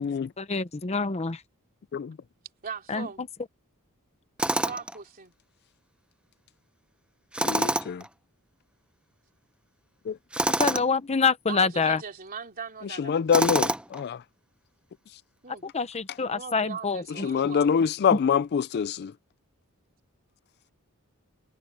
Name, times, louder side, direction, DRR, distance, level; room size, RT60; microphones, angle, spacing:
voice 1, 0.4-1.4 2.9-3.1 10.6-12.0 15.6-17.0, left 5 dB, 30° left, 0.8 m, -26 dB
voice 2, 2.6-3.3 4.6-5.3 11.5-13.2 15.4-15.7 16.2-17.8, right 5 dB, 40° right, 3.3 m, -39 dB
Tools, 4.4-5.0 7.3-8.1 10.3-10.9 13.3-14.0, right 1 dB, 5° right, 0.7 m, -26 dB
voice 3, 7.4-8.0 10.1-10.2 13.1-14.2 17.2-19.1, left 7 dB, 50° left, 0.3 m, -25 dB
head